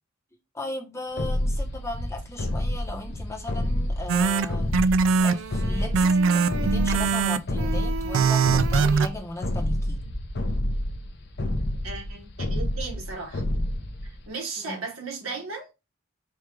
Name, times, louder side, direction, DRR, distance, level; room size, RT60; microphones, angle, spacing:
voice 1, 0.5-10.0 14.7-14.8, left 2 dB, 15° left, 0.8 m, -37 dB
sound 1, 1.2-14.3, left 1 dB, 50° left, 0.6 m, -29 dB
sound 2, 4.1-9.1, right 5 dB, 65° right, 0.3 m, -22 dB
voice 2, 11.8-13.4 14.0-15.7, right 4 dB, 85° right, 1.4 m, -36 dB
4.5 x 2.4 x 4.6 m
head